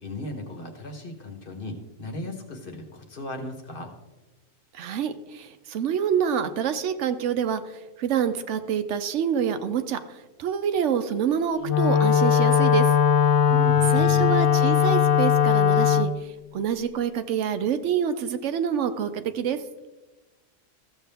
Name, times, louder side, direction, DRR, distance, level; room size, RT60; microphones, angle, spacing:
voice 1, 0.0-3.9 13.5-14.3, left 1 dB, 45° left, 5 dB, 1.3 m, -36 dB
voice 2, 4.7-12.9 13.9-19.6, right 8 dB, 75° right, 10 dB, 0.9 m, -27 dB
Wind instrument woodwind instrument, 11.6-16.1, left 8 dB, 70° left, 0.8 m, -19 dB
14.0 x 7.2 x 3.4 m, 1.1 s
omnidirectional pair, 1.3 m